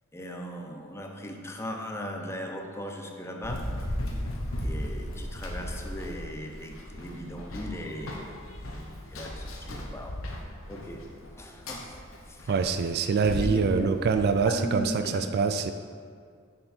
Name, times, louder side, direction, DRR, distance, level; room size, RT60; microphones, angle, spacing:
voice 1, 0.1-3.7 4.6-8.4 9.1-10.2 10.7-11.1 11.4-12.0 12.3-12.5 13.3-13.9 14.5-15.2, equal, 10° left, 2 dB, 0.7 m, -38 dB
Run, 3.4-14.8, left 1 dB, 70° left, 1.1 m, -36 dB
voice 2, 12.5-15.7, right 5 dB, 50° right, 9 dB, 0.3 m, -25 dB
7.0 x 6.7 x 4.3 m, 2.1 s
head